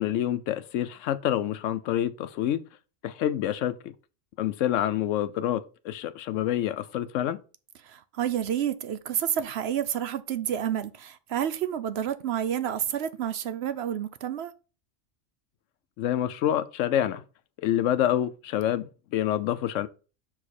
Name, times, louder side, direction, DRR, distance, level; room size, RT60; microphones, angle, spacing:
voice 1, 0.0-2.6 3.0-3.9 4.4-7.4 16.0-17.2 17.6-19.9, left 11 dB, 85° left, 1.0 m, -27 dB
voice 2, 7.8-14.5, right 9 dB, 65° right, 0.8 m, -29 dB
6.2 x 4.9 x 4.1 m
omnidirectional pair, 1.3 m